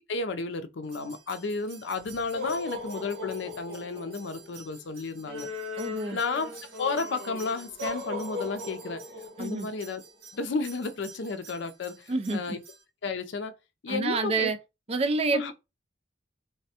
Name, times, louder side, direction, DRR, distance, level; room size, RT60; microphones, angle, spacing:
voice 1, 0.1-5.5 6.1-6.5 6.8-9.0 9.4-10.0 10.3-12.6 13.0-13.5 13.8-14.5 15.3-15.5, left 3 dB, 65° left, 0.4 m, -32 dB
sound 1, 0.9-12.8, left 2 dB, 85° right, 1.3 m, -40 dB
voice 2, 5.8-6.2 9.4-9.7 12.1-12.6 13.9-14.6 14.9-15.5, right 3 dB, 30° right, 0.4 m, -28 dB
3.3 x 2.2 x 2.8 m
head